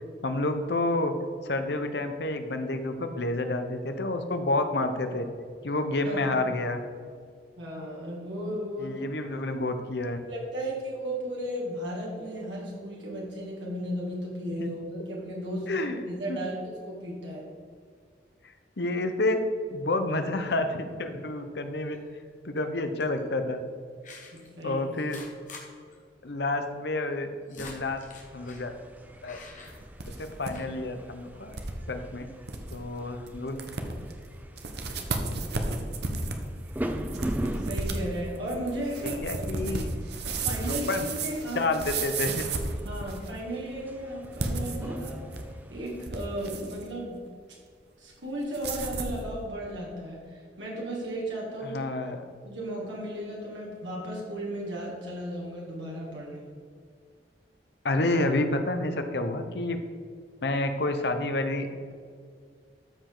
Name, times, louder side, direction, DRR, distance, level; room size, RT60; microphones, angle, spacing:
voice 1, 0.2-1.1 1.4-5.2 5.6-6.8 8.8-10.2 15.7-16.4 18.8-19.4 19.7-22.0 22.4-23.6 24.6-25.2 26.2-28.0 28.3-28.7 29.2-29.4 30.2-31.5 31.9-32.3 32.7-33.6 39.0-39.9 40.9-41.0 41.5-42.4 51.6-52.3 57.8-59.8 60.4-61.7, left 2 dB, 65° left, 7 dB, 0.9 m, -29 dB
voice 2, 7.6-9.0 10.3-16.6 16.9-17.5 24.3-24.8 37.6-39.2 39.5-39.8 40.3-41.6 42.8-45.2 45.7-47.2 48.0-51.8 52.4-56.5, right 1 dB, 90° right, -4 dB, 2.2 m, -35 dB
sound 1, 21.8-22.3 23.0-23.2 24.0-24.5 24.9-25.6 25.9-26.0 26.3-26.4 27.1-28.7 29.2-30.2 30.5-30.7, left 3 dB, 45° left, 1.6 m, -47 dB
sound 2, 27.6-46.1, right 1 dB, 10° right, 0.5 m, -42 dB
sound 3, 29.7-30.5 30.8-30.9 31.5-31.7 32.2-32.3 32.5-32.8 33.3-33.4 33.6-34.1 34.6-43.4 44.2-45.5 45.9-46.8 48.5-49.2, right 3 dB, 65° right, 1.0 m, -33 dB
13.0 x 5.1 x 3.9 m, 2.1 s
head